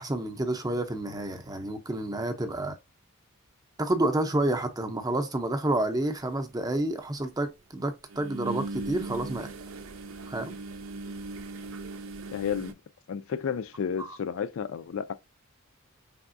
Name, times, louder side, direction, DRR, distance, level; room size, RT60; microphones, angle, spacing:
voice 1, 0.0-2.8 3.8-9.5 10.3-10.6 14.0-14.2, right 1 dB, 15° right, 0.6 m, -29 dB
sound 1, 6.2-6.3 8.1-12.7, right 3 dB, 70° right, 0.5 m, -38 dB
voice 2, 12.3-12.8 13.1-15.1, left 7 dB, 65° left, 0.4 m, -32 dB
4.8 x 3.5 x 2.5 m
head